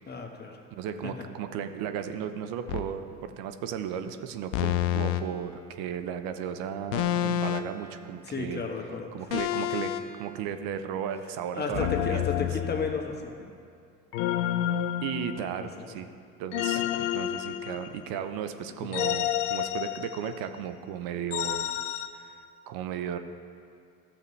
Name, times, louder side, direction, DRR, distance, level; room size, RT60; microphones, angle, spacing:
voice 1, 0.1-0.6 1.0-1.1 8.2-9.1 11.5-13.5 15.6-16.0 16.7-17.0 18.8-19.1, left 4 dB, 25° left, 2 dB, 1.2 m, -34 dB
voice 2, 0.7-8.6 9.1-12.3 15.0-16.1 16.4-21.8 22.1-22.4 22.7-23.2, right 8 dB, 65° right, 9 dB, 0.7 m, -35 dB
sound 1, 2.7-2.9 4.5-5.2 6.9-7.8 9.3-10.0 11.7-13.2 14.1-15.7 16.5-18.2 18.9-20.4 21.3-22.1, left 11 dB, 85° left, 0.6 m, -29 dB
13.0 x 6.8 x 3.2 m, 2.4 s
hypercardioid pair, 75°, 38 cm